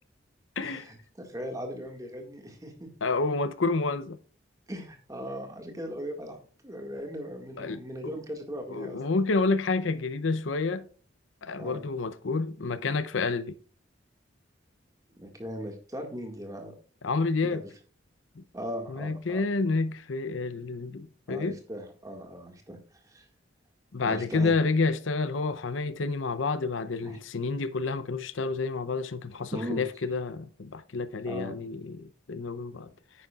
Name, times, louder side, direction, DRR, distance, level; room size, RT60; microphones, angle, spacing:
voice 1, 0.6-2.9 4.7-6.4 6.6-9.0 11.5-11.9 15.2-16.7 17.4-17.6 18.5-19.4 21.3-23.3 24.1-24.5 27.0-27.2 29.5-29.8 31.2-31.5, equal, 20° right, 1.8 m, -38 dB
voice 2, 3.0-4.2 7.6-8.1 8.7-10.9 11.4-13.6 17.0-17.6 18.4-18.5 18.9-21.6 23.9-32.9, left 3 dB, 80° left, 0.7 m, -29 dB
9.9 x 9.4 x 2.4 m
head